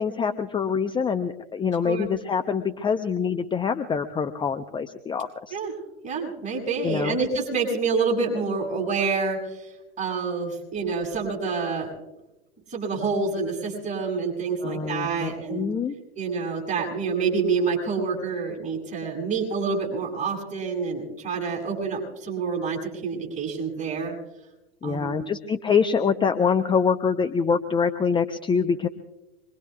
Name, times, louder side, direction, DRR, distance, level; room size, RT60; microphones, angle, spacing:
voice 1, 0.0-5.6 6.8-7.2 14.6-16.0 24.8-28.9, left 6 dB, 15° left, 8 dB, 0.7 m, -25 dB
voice 2, 6.0-9.4 10.0-11.9 12.7-15.7 16.2-24.1 24.8-25.2, right 4 dB, 20° right, -2 dB, 7.8 m, -27 dB
26.5 x 22.5 x 2.4 m, 1.0 s
hypercardioid pair, 95°, 32 cm